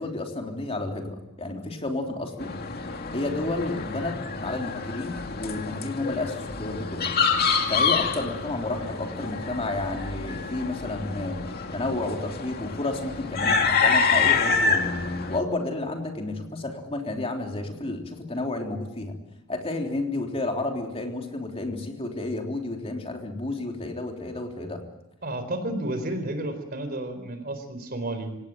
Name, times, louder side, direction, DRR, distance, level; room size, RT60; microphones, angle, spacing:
voice 1, 0.0-2.5 3.1-7.1 7.7-11.4 11.7-14.9 15.3-19.2 19.5-24.8, left 2 dB, 30° left, 2 dB, 3.4 m, -31 dB
sound 1, 2.4-15.4, left 5 dB, 50° left, 2.4 m, -27 dB
voice 2, 25.2-28.4, right 1 dB, 45° right, 9 dB, 4.2 m, -31 dB
27.0 x 18.0 x 9.3 m, 0.94 s
head